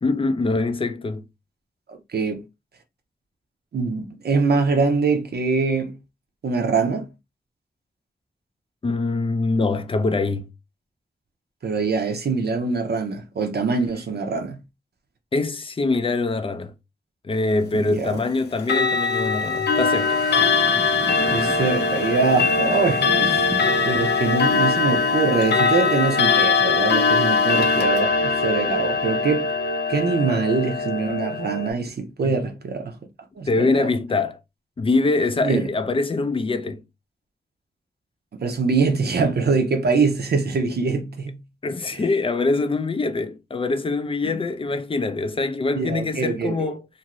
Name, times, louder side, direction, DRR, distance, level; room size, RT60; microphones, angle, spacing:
voice 1, 0.0-1.2 8.8-10.5 15.3-16.7 17.2-20.2 32.2-32.4 33.5-34.4 34.8-36.8 41.6-46.9, left 3 dB, 30° left, 0.4 m, -24 dB
voice 2, 1.9-2.5 3.7-5.9 6.4-7.1 11.6-14.6 17.7-18.2 21.3-29.5 29.9-33.0 33.4-33.9 35.4-35.7 38.4-41.4 41.9-42.1 44.2-44.3 45.7-46.7, right 4 dB, 70° right, 0.6 m, -23 dB
Clock, 18.6-31.7, left 4 dB, 75° left, 0.6 m, -21 dB
sound 1, 19.7-24.7, right 2 dB, 25° right, 0.7 m, -35 dB
2.5 x 2.5 x 3.0 m
wide cardioid pair, 120°, 17 cm